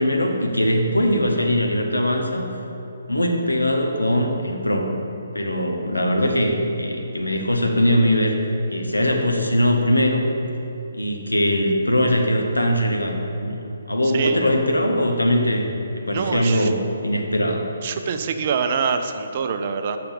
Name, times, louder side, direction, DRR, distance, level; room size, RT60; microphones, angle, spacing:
voice 1, 0.0-2.5 3.1-4.9 5.3-8.4 8.7-10.2 10.9-15.7 15.9-17.7, equal, 80° left, 2 dB, 0.9 m, -21 dB
voice 2, 16.1-16.7 17.8-20.0, right 6 dB, 40° right, 8 dB, 0.4 m, -25 dB
6.8 x 5.7 x 5.2 m, 3.0 s
figure-of-eight pair, 140°, 0 cm